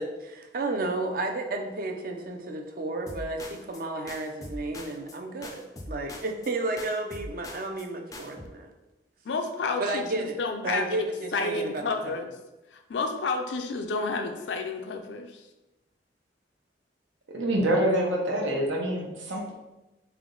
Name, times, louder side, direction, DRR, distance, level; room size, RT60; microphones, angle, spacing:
voice 1, 0.0-8.7 9.8-12.2, right 2 dB, 50° right, 3 dB, 0.5 m, -32 dB
sound 1, 3.1-3.8 4.1-5.2 5.4-6.5 6.8-7.9 8.1-8.5, left 1 dB, 20° left, 0.4 m, -42 dB
voice 2, 9.3-10.9 11.3-12.3 12.7-15.4, left 3 dB, 80° left, 5 dB, 0.5 m, -30 dB
voice 3, 17.3-19.5, right 1 dB, 90° right, -1 dB, 1.0 m, -26 dB
3.4 x 2.9 x 3.8 m, 1.0 s
head